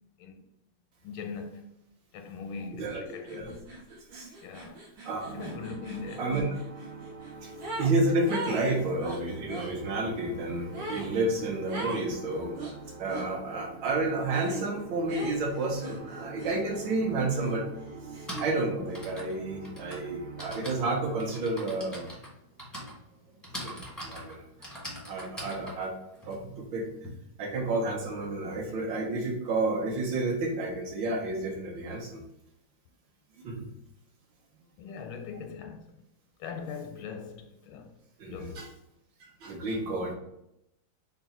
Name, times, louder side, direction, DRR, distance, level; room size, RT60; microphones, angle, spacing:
voice 1, 1.0-1.7 2.1-3.7 4.4-4.8 5.3-6.4 34.8-36.0 36.4-37.9 38.3-38.7, left 5 dB, 85° left, 1.4 m, -41 dB
voice 2, 2.7-3.5 4.1-4.3 5.0-5.3 6.2-6.5 7.4-7.5 7.8-12.5 13.0-17.6 18.4-22.1 23.5-23.7 24.0-24.4 25.0-25.9 26.3-26.9 27.4-32.2 33.4-33.6 38.2-38.7 39.4-40.1, right 2 dB, 70° right, 1.4 m, -30 dB
sound 1, 2.8-3.0 3.3-8.0 8.3-9.7 10.7-11.1 11.7-12.1 12.6-13.3 14.4-14.7 15.1-16.9 17.3-18.7, right 2 dB, 85° right, 1.7 m, -40 dB
sound 2, 5.2-20.8, right 3 dB, 50° right, 1.0 m, -45 dB
Typing, 16.9-17.0 18.0-27.1, equal, ahead, 0.5 m, -43 dB
3.8 x 2.3 x 4.1 m
omnidirectional pair, 2.2 m